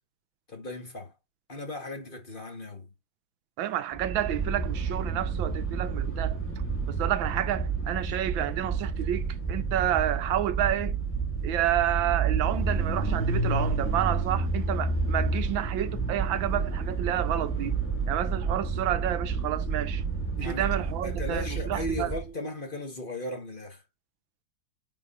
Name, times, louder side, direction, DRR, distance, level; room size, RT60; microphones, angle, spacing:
voice 1, 0.5-1.1 1.5-2.9 20.4-23.8, left 1 dB, 30° left, 1.7 m, -37 dB
voice 2, 3.6-6.4 6.9-11.0 11.4-17.8 18.1-20.0 20.4-22.1, right 12 dB, 90° right, 1.5 m, -30 dB
sound 1, 3.9-22.3, right 4 dB, 5° left, 2.3 m, -30 dB
9.0 x 4.4 x 2.7 m
omnidirectional pair, 2.1 m